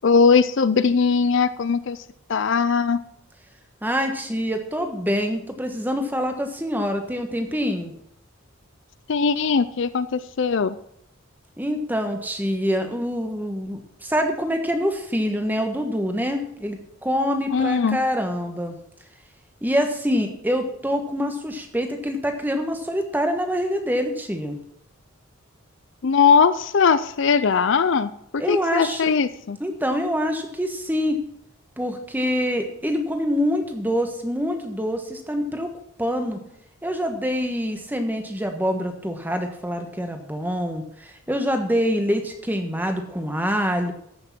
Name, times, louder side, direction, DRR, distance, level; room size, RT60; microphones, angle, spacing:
voice 1, 0.0-2.0 2.3-3.0 9.1-10.8 17.5-18.0 26.0-29.6, left 5 dB, 55° left, 14 dB, 0.5 m, -20 dB
voice 2, 3.8-7.9 11.6-18.8 19.6-24.6 28.4-29.1 29.6-31.2 31.8-35.7 36.0-36.4 36.8-43.9, equal, 10° right, 5 dB, 1.3 m, -25 dB
14.5 x 6.5 x 6.0 m, 0.73 s
head